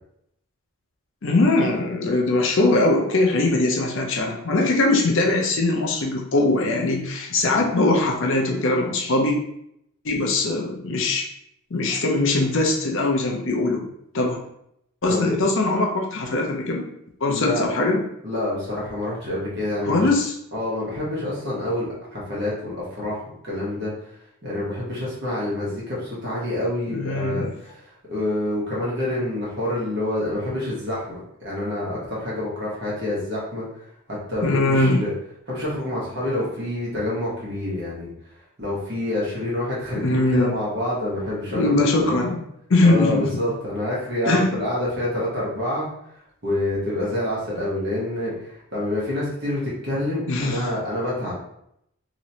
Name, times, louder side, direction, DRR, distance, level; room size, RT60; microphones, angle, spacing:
voice 1, 1.2-9.4 10.0-11.3 11.7-13.9 14.1-14.4 15.0-16.8 17.2-18.0 19.9-20.3 26.9-27.5 34.4-35.0 39.9-40.5 41.5-42.4 42.7-43.3 44.3-44.5 50.3-50.7, left 2 dB, 60° left, 0 dB, 0.6 m, -21 dB
voice 2, 17.3-17.6 18.2-20.1 20.5-23.9 24.4-33.7 34.1-35.1 35.5-38.1 38.6-41.8 42.2-42.3 42.8-45.9 46.4-51.3, left 1 dB, 50° right, -7 dB, 1.4 m, -27 dB
3.0 x 3.0 x 2.8 m, 0.75 s
head